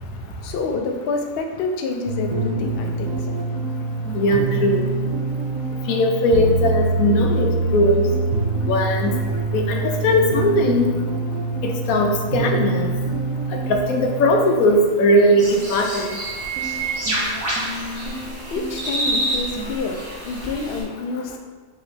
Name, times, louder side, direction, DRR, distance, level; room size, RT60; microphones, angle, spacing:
voice 1, 0.4-3.3 18.5-21.4, left 4 dB, 65° left, 3 dB, 0.6 m, -28 dB
sound 1, 2.1-14.9 16.6-19.7, right 3 dB, 80° right, 1.0 m, -25 dB
voice 2, 4.1-4.9 5.9-8.1 8.7-9.1 9.5-10.9 11.6-12.9 13.7-16.1, left 1 dB, 90° left, 2 dB, 1.1 m, -19 dB
sound 2, 15.4-20.8, right 1 dB, 30° right, 1.1 m, -27 dB
4.9 x 3.0 x 3.2 m, 1.5 s
omnidirectional pair, 1.5 m